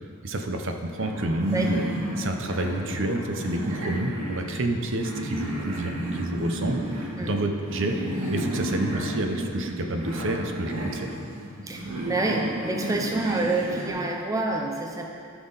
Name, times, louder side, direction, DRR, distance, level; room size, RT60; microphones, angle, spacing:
voice 1, 0.2-1.9 2.2-8.0 8.3-11.1, right 1 dB, 60° right, 4 dB, 0.7 m, -29 dB
sound 1, 1.0-13.9, right 1 dB, 75° right, 1.6 m, -32 dB
voice 2, 11.6-15.1, right 2 dB, 15° right, 1 dB, 0.5 m, -27 dB
13.5 x 6.0 x 4.0 m, 2.4 s
head